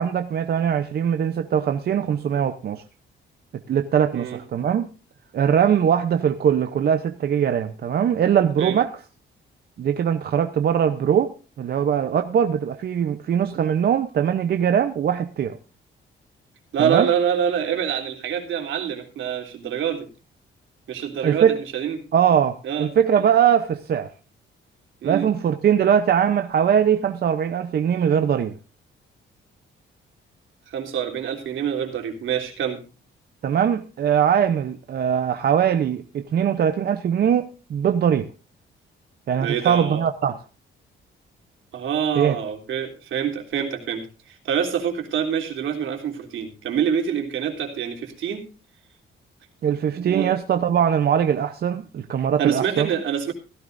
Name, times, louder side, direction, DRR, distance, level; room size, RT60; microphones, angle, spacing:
voice 1, 0.0-2.8 3.7-4.9 5.3-8.9 9.8-15.6 16.8-17.1 21.2-21.6 22.1-24.1 25.0-28.5 33.4-38.3 39.3-40.4 42.2-42.4 49.6-52.9, right 8 dB, 50° right, 0.8 m, -21 dB
voice 2, 16.7-20.1 20.9-22.0 22.6-22.9 25.0-25.3 30.7-32.8 39.4-40.0 41.7-48.4 50.0-50.3 52.4-53.3, right 8 dB, 75° right, 3.3 m, -26 dB
16.0 x 15.5 x 2.6 m
cardioid pair, 145°, 20 cm